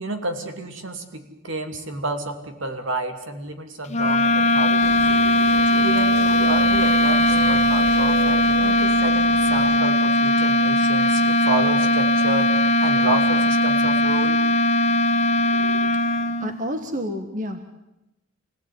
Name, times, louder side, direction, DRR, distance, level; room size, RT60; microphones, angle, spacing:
voice 1, 0.0-5.1 5.8-12.5 12.8-14.4, right 2 dB, 75° right, 6 dB, 2.9 m, -30 dB
sound 1, 3.9-16.6, left 1 dB, 35° left, 1.0 m, -19 dB
sound 2, 4.8-9.8, right 3 dB, 55° right, 1.2 m, -35 dB
voice 2, 16.4-17.7, equal, 40° right, 7 dB, 1.6 m, -29 dB
25.5 x 18.0 x 9.5 m, 0.92 s
head